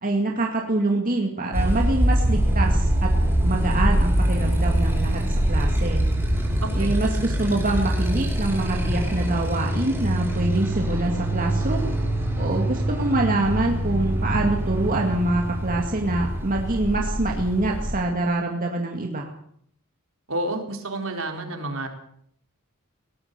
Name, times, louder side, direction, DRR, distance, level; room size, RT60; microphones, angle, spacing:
voice 1, 0.0-3.1 3.4-5.2 5.5-6.0 6.7-11.8 12.4-19.3, right 2 dB, 40° right, 1 dB, 2.2 m, -25 dB
Motorcycle, 1.5-18.0, right 1 dB, 10° right, 5.8 m, -24 dB
voice 2, 6.6-6.9 20.3-21.9, right 1 dB, 65° right, 4 dB, 4.2 m, -29 dB
22.0 x 18.5 x 6.9 m, 0.67 s
head